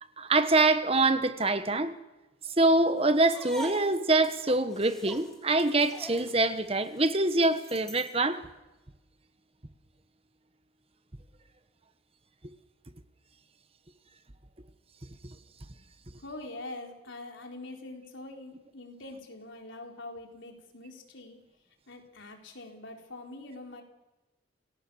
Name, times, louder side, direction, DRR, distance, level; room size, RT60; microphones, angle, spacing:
voice 1, 0.2-2.0 2.6-8.4, right 2 dB, 30° right, 1.2 m, -25 dB
sound 1, 3.2-8.2, equal, 5° left, 2.4 m, -44 dB
voice 2, 16.2-21.4 21.9-23.8, left 2 dB, 75° left, 4.2 m, -44 dB
27.5 x 18.5 x 7.1 m
head